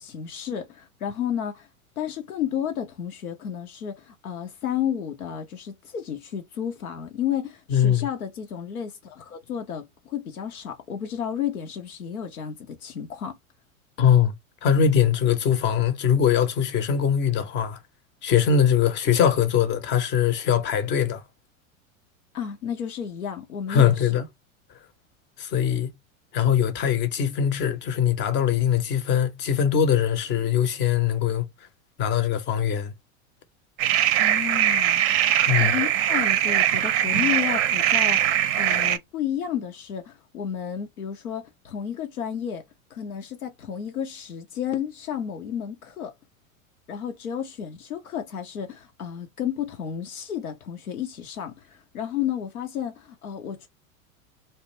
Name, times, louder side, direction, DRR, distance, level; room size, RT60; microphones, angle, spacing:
voice 1, 0.0-1.7 2.0-13.4 22.3-24.2 34.2-35.0 35.6-42.6 42.9-46.1 46.9-53.7, left 9 dB, 90° left, 0.6 m, -32 dB
voice 2, 7.7-8.1 14.0-14.3 14.6-17.8 18.2-21.2 23.7-24.3 25.4-25.9 26.3-31.5 32.0-32.9 35.5-35.8, left 8 dB, 25° left, 0.5 m, -22 dB
sound 1, 33.8-39.0, right 11 dB, 50° right, 0.5 m, -21 dB
2.4 x 2.1 x 2.8 m
hypercardioid pair, 90°, 42 cm